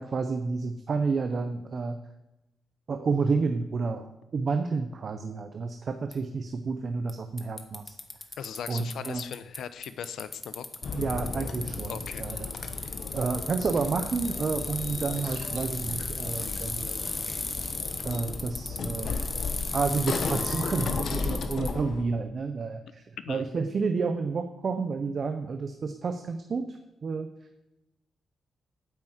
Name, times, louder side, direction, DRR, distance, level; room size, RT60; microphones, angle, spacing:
voice 1, 0.0-2.0 2.9-8.0 8.7-9.2 10.9-12.5 13.1-16.9 18.0-19.2 19.7-27.3, right 4 dB, 40° right, 7 dB, 0.8 m, -30 dB
Bicycle, 6.1-6.2 7.1-7.2 7.4-9.6 9.8-21.7, left 3 dB, 20° left, 1.2 m, -36 dB
voice 2, 8.4-10.7 11.9-12.2 12.7-12.9 23.2-23.4, left 8 dB, 80° left, 13 dB, 0.8 m, -39 dB
sound 1, 10.8-22.0, left 4 dB, 50° left, 1.2 m, -35 dB
sound 2, 15.1-19.3, right 3 dB, 90° right, 4.1 m, -52 dB
9.4 x 9.1 x 7.9 m, 0.95 s
wide cardioid pair, 160°, 0 cm